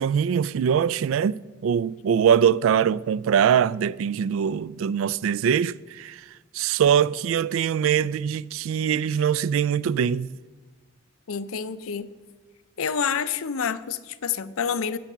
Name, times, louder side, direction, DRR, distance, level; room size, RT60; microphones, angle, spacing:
voice 1, 0.0-6.2 6.5-10.3, right 8 dB, 75° right, 0.3 m, -22 dB
voice 2, 11.3-12.1 12.8-15.0, left 6 dB, 85° left, 0.6 m, -28 dB
15.5 x 5.8 x 7.2 m
head